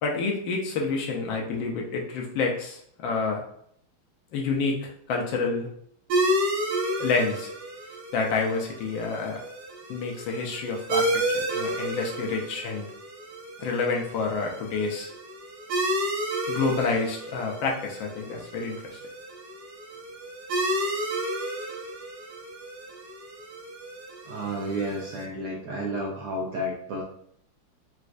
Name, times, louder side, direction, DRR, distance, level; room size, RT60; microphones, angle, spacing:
voice 1, 0.0-3.4 4.3-5.7 7.0-7.5 8.1-9.4 9.9-12.9 13.6-15.1 16.5-19.0, left 4 dB, 75° left, 0 dB, 1.3 m, -28 dB
sound 1, 6.1-25.2, right 1 dB, 65° right, 1.1 m, -31 dB
voice 2, 24.3-27.0, right 1 dB, 85° right, -2 dB, 0.9 m, -31 dB
4.2 x 2.3 x 2.5 m, 0.67 s
omnidirectional pair, 2.4 m